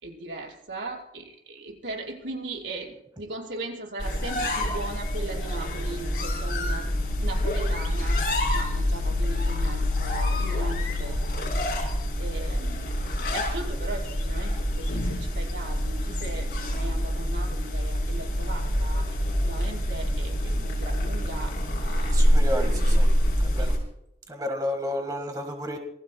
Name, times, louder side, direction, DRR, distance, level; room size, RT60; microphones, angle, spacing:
voice 1, 0.0-6.9 7.2-8.2 8.5-11.5 12.2-12.9 13.3-19.1 19.4-22.2 22.6-22.8 23.6-23.7, right 2 dB, 90° right, -2 dB, 5.5 m, -38 dB
sound 1, 4.0-23.8, left 1 dB, 55° left, 5.7 m, -26 dB
voice 2, 22.1-23.1 23.4-23.7 24.3-25.8, equal, 20° right, 4 dB, 1.6 m, -31 dB
27.5 x 20.0 x 2.2 m, 0.83 s
head